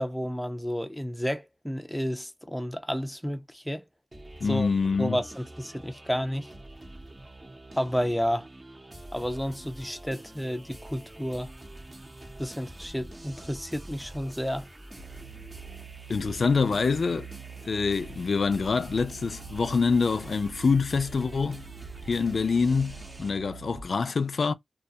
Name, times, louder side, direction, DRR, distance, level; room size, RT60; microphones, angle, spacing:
voice 1, 0.0-3.8 4.5-4.7 5.0-6.5 7.8-8.5 9.1-11.5 12.4-14.7, equal, ahead, 0.4 m, -31 dB
sound 1, 4.1-23.3, right 1 dB, 35° right, 0.7 m, -46 dB
voice 2, 4.4-5.2 16.1-17.3 17.7-21.6 22.1-24.5, left 4 dB, 70° left, 0.3 m, -25 dB
sound 2, 15.0-23.9, right 8 dB, 75° right, 0.6 m, -46 dB
2.3 x 2.2 x 2.6 m
wide cardioid pair, 75°, 0 cm